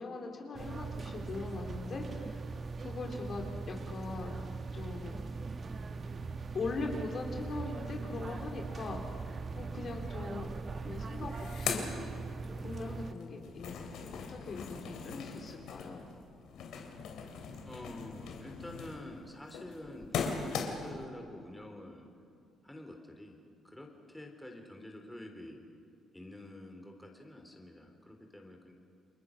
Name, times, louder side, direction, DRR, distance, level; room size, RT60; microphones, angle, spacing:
voice 1, 0.0-2.4 2.8-4.4 4.7-5.2 6.5-9.3 9.6-10.5 10.8-11.9 12.5-16.1, left 3 dB, 50° left, 2 dB, 3.7 m, -41 dB
sound 1, 0.5-13.1, right 4 dB, 40° right, 1.3 m, -40 dB
sound 2, 10.6-10.7 11.0-12.8 13.1-21.0, left 6 dB, 80° left, 3.1 m, -40 dB
voice 2, 17.6-22.1 22.6-23.4 23.6-25.6 26.1-28.7, left 1 dB, 5° left, 3 dB, 3.5 m, -48 dB
30.0 x 22.0 x 6.4 m, 2.4 s
cardioid pair, 90°, 0 cm